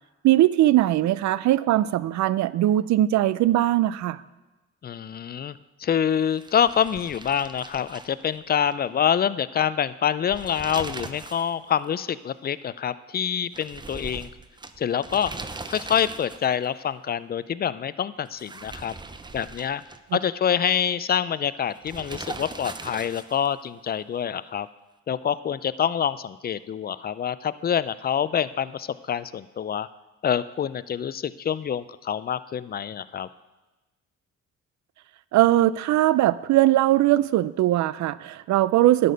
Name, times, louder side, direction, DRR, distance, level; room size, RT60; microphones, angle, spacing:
voice 1, 0.2-4.2 35.3-39.1, right 14 dB, 70° right, 18 dB, 0.5 m, -20 dB
voice 2, 4.8-14.3 14.8-15.3 15.7-18.9 19.3-19.8 20.1-24.7 25.1-29.9 30.2-33.3, left 8 dB, 35° left, 16 dB, 0.4 m, -26 dB
sound 1, 6.3-8.7 9.0-9.1 10.1-11.5 11.8-11.9 13.5-16.6 18.2-20.2 21.8-23.5, right 3 dB, 15° right, 0.6 m, -40 dB
11.0 x 6.8 x 5.2 m, 1.1 s
cardioid pair, 90°, 30 cm